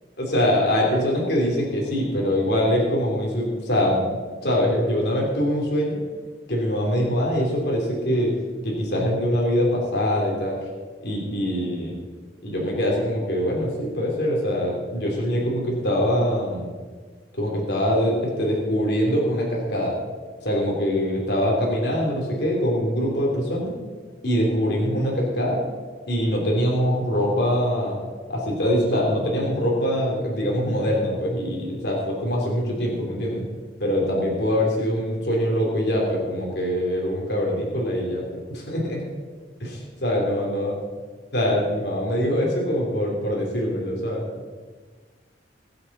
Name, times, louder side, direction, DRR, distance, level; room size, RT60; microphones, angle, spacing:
voice 1, 0.2-4.1 4.4-6.0 6.5-8.3 8.6-10.6 11.0-11.9 12.4-16.6 17.4-19.9 20.4-23.7 24.2-25.6 26.1-28.0 28.3-33.4 33.8-38.2 38.5-39.0 39.6-40.7 41.3-44.2, equal, 65° left, -2 dB, 3.3 m, -23 dB
22.0 x 7.9 x 4.3 m, 1.5 s
head